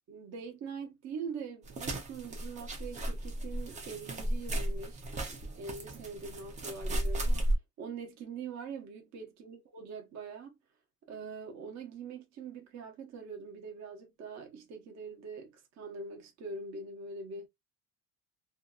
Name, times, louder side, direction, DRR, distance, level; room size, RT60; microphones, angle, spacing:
voice 1, 0.1-5.0 5.6-7.4 7.8-10.6 11.1-17.5, right 4 dB, 40° right, 0.9 m, -43 dB
sound 1, 1.7-7.6, right 1 dB, 20° right, 0.4 m, -34 dB
2.6 x 2.4 x 2.3 m
cardioid pair, 165°, 42 cm